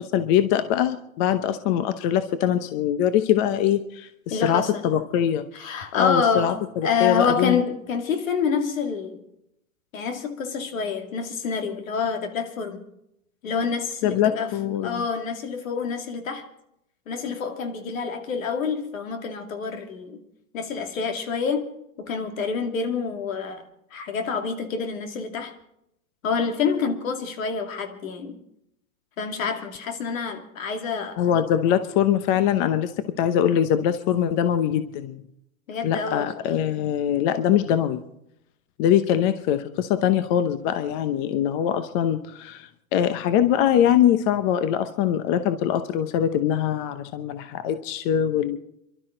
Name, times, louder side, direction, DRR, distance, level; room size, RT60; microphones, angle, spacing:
voice 1, 0.1-5.4 5.9-7.6 14.0-15.0 31.2-32.9 33.2-35.2 35.8-38.0 38.8-48.6, left 10 dB, 40° left, 0.9 m, -23 dB
voice 2, 4.3-4.8 5.5-9.2 9.9-12.9 13.4-14.5 14.8-16.5 17.1-20.2 20.5-21.7 22.0-23.6 23.9-25.5 26.2-28.4 29.2-31.2 35.7-36.3, left 5 dB, 75° left, 2.5 m, -27 dB
25.5 x 12.5 x 3.9 m
hypercardioid pair, 130°, 40 cm